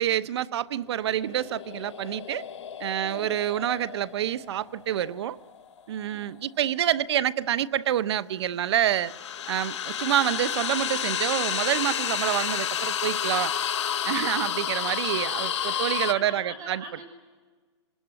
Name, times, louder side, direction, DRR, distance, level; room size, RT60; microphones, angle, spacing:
voice 1, 0.0-2.4 2.8-5.4 5.9-9.1 9.5-13.5 14.0-16.8, right 11 dB, 65° right, 0.9 m, -27 dB
sound 1, 1.0-6.1 8.6-16.1, left 9 dB, 80° left, 1.1 m, -31 dB
voice 2, 3.0-3.3 6.0-6.4 16.1-17.0, right 2 dB, 25° right, 5.9 m, -42 dB
25.5 x 20.0 x 9.6 m
hypercardioid pair, 150°, 15 cm